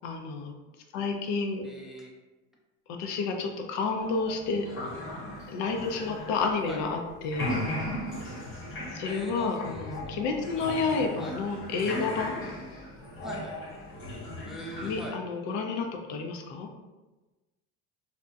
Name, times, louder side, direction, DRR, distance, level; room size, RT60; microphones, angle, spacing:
voice 1, 0.0-0.5 0.9-1.7 3.0-4.7 5.5-7.6 8.9-12.4 14.8-16.7, left 4 dB, 70° left, 3 dB, 0.5 m, -30 dB
voice 2, 1.6-2.1 6.7-6.8 9.0-10.2 11.2-11.3 13.2-13.5 14.5-15.1, equal, ahead, -3 dB, 0.4 m, -41 dB
sound 1, 4.0-7.0 7.2-15.1, left 1 dB, 40° left, 0.9 m, -37 dB
2.7 x 2.1 x 2.3 m, 1.1 s
hypercardioid pair, 80°, 32 cm